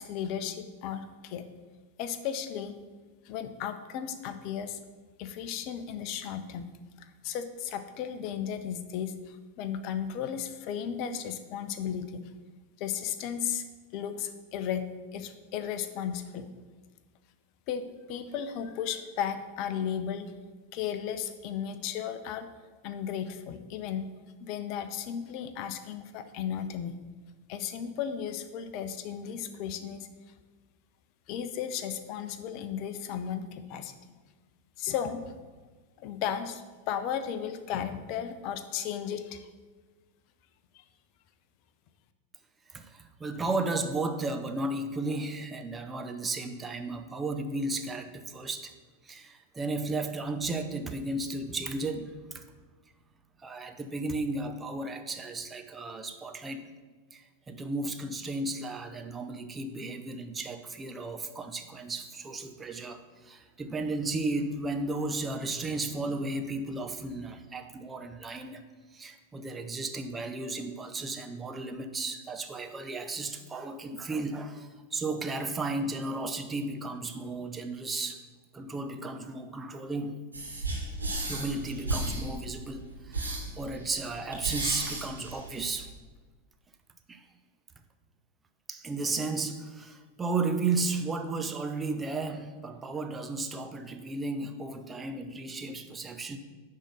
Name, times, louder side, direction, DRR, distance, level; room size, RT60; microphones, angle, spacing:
voice 1, 0.0-1.4 2.0-2.7 3.2-4.8 5.2-6.6 7.0-12.2 12.8-13.7 13.9-14.9 15.1-16.5 17.7-20.3 20.7-22.5 22.8-24.1 24.4-27.0 27.5-30.1 31.3-33.9 34.8-35.3 36.0-39.5, left 8 dB, 40° left, 10 dB, 0.6 m, -35 dB
voice 2, 42.7-48.7 49.0-52.4 53.4-56.8 57.1-68.6 68.9-78.2 78.5-80.3 81.2-85.9 87.1-87.2 88.7-96.4, right 3 dB, 15° right, 7 dB, 0.7 m, -34 dB
sound 1, 80.3-85.9, right 2 dB, 80° right, 2.1 m, -34 dB
10.0 x 3.8 x 6.5 m, 1.3 s
figure-of-eight pair, 90°, 0 cm